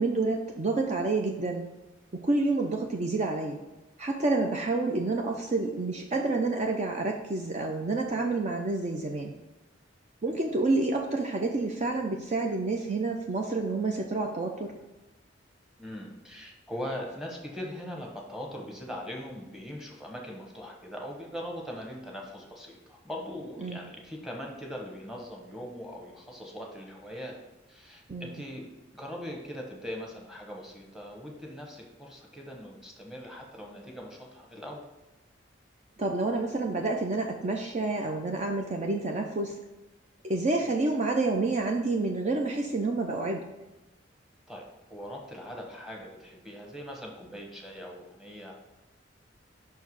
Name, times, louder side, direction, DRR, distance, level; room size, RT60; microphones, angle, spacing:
voice 1, 0.0-1.6 2.1-3.6 4.0-9.3 10.2-14.7 23.6-23.9 28.1-28.4 36.0-39.6 40.2-43.4, right 3 dB, 40° right, 2 dB, 0.5 m, -29 dB
voice 2, 15.8-27.4 27.7-28.6 28.9-34.8 44.5-44.6 44.9-48.5, equal, ahead, 0 dB, 1.3 m, -41 dB
5.7 x 4.6 x 4.7 m, 1.1 s
head